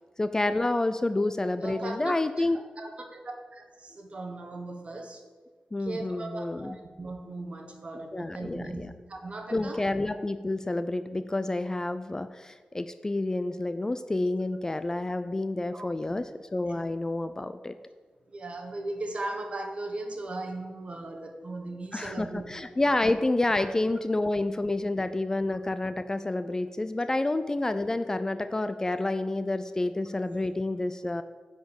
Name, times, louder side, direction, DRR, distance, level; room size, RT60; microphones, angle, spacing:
voice 1, 0.2-2.6 5.7-6.8 8.1-8.9 9.5-17.8 21.9-31.2, left 2 dB, 20° left, 11 dB, 0.3 m, -29 dB
voice 2, 1.6-2.2 2.5-3.2 3.5-5.2 5.8-9.8 15.7-16.2 18.3-22.5 23.6-23.7, right 2 dB, 45° right, 3 dB, 1.2 m, -38 dB
10.5 x 4.4 x 7.1 m, 1.5 s
wide cardioid pair, 130°, 3 cm